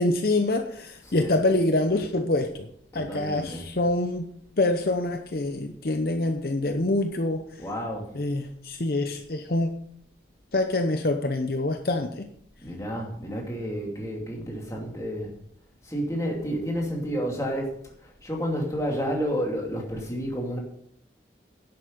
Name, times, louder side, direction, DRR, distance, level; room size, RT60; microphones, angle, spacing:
voice 1, 0.0-2.7 2.9-4.3 4.6-7.5 8.1-9.7 10.5-12.3, left 2 dB, 55° left, 0.8 m, -25 dB
voice 2, 1.0-1.4 2.9-3.7 7.6-8.1 12.6-15.3 15.8-17.8 18.0-20.6, equal, 15° left, 2.5 m, -30 dB
11.0 x 8.2 x 5.3 m
head